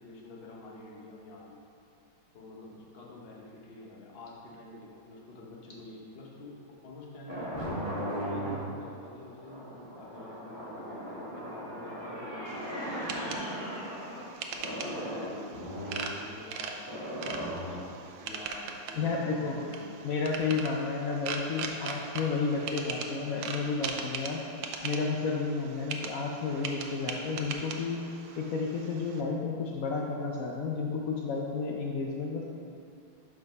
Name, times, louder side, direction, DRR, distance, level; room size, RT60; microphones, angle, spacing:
voice 1, 0.0-1.6 2.3-7.8 8.2-14.1 14.5-17.8 18.2-20.7 21.6-21.9, left 2 dB, 40° left, -2 dB, 0.9 m, -48 dB
sound 1, 7.3-14.3 14.6-16.1 16.9-18.0, equal, 15° left, 1.0 m, -37 dB
sound 2, 12.5-29.2, right 5 dB, 75° right, 1.3 m, -40 dB
voice 2, 19.0-19.6 20.0-24.4 24.8-28.0 28.4-32.4, left 4 dB, 80° left, -1 dB, 0.7 m, -31 dB
5.9 x 5.1 x 5.2 m, 2.4 s
omnidirectional pair, 2.1 m